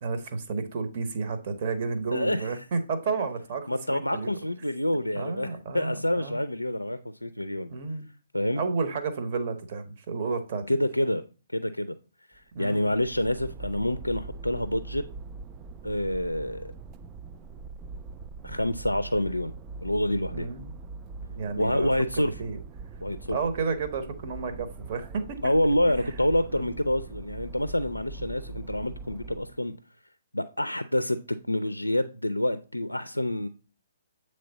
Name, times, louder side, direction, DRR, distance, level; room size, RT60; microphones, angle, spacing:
voice 1, 0.0-4.3 5.1-6.4 7.7-8.1 8.6-10.8 12.5-12.9 20.3-20.7 21.4-21.9 22.2-22.6 23.3-25.5 25.8-26.1 26.5-26.7, right 4 dB, 40° right, 0.9 m, -32 dB
voice 2, 2.1-2.5 3.7-5.5 5.7-7.7 8.3-8.6 10.7-11.2 11.5-11.9 12.6-15.0 15.8-16.7 18.4-19.5 19.8-20.5 21.6-22.3 23.0-23.4 25.4-29.7 30.3-33.5, left 1 dB, 85° left, 0.3 m, -27 dB
sound 1, 12.3-29.6, right 3 dB, 20° right, 0.3 m, -42 dB
7.7 x 3.2 x 3.9 m
figure-of-eight pair, 130°, 0 cm